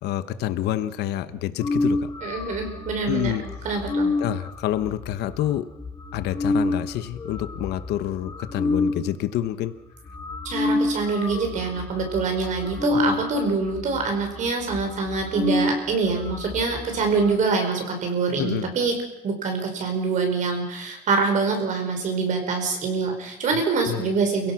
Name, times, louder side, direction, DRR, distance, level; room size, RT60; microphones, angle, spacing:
voice 1, 0.0-2.1 3.1-3.5 4.2-5.7 6.1-9.8 12.9-13.2 18.4-18.7 23.9-24.1, left 12 dB, 85° left, 12 dB, 1.1 m, -28 dB
sound 1, 1.6-9.0 9.7-9.8 10.0-17.3, left 2 dB, 20° left, 2.3 m, -29 dB
voice 2, 2.2-3.3 3.6-4.1 10.4-19.0 19.2-24.5, right 4 dB, 50° right, 4 dB, 5.3 m, -25 dB
29.5 x 16.5 x 5.9 m, 0.88 s
cardioid pair, 165°, 17 cm